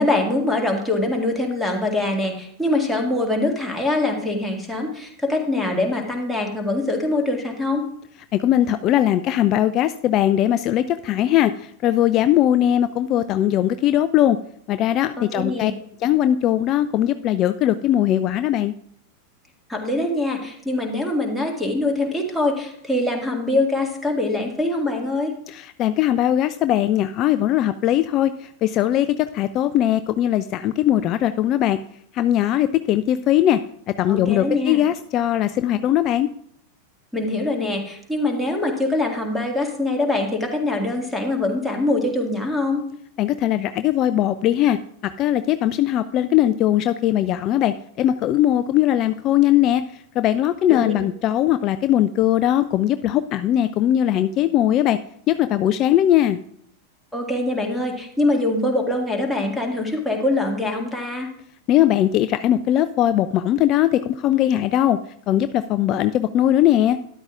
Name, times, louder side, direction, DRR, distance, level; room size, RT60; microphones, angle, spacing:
voice 1, 0.0-7.8 15.2-15.7 19.7-25.3 34.1-34.8 37.1-42.8 50.7-50.9 57.1-61.3, left 2 dB, ahead, -1 dB, 1.9 m, -23 dB
voice 2, 8.3-11.5 11.8-14.4 14.7-15.7 16.0-18.7 25.5-31.8 32.1-33.6 34.0-36.3 43.2-44.8 45.2-49.8 50.2-55.0 55.3-56.4 61.7-65.0 65.3-67.0, left 12 dB, 35° left, 11 dB, 0.3 m, -20 dB
12.5 x 11.0 x 2.4 m, 0.68 s
figure-of-eight pair, 90°, 0 cm